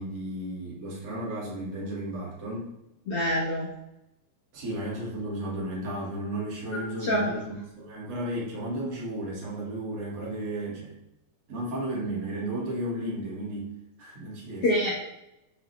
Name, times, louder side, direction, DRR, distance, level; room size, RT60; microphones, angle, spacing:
voice 1, 0.0-2.7 4.5-11.0 11.5-13.7 14.0-14.7, right 1 dB, 30° right, -5 dB, 1.9 m, -34 dB
voice 2, 3.1-3.7 7.0-7.3 14.6-14.9, equal, 85° left, -6 dB, 1.2 m, -25 dB
9.9 x 5.6 x 3.5 m, 0.86 s
omnidirectional pair, 5.2 m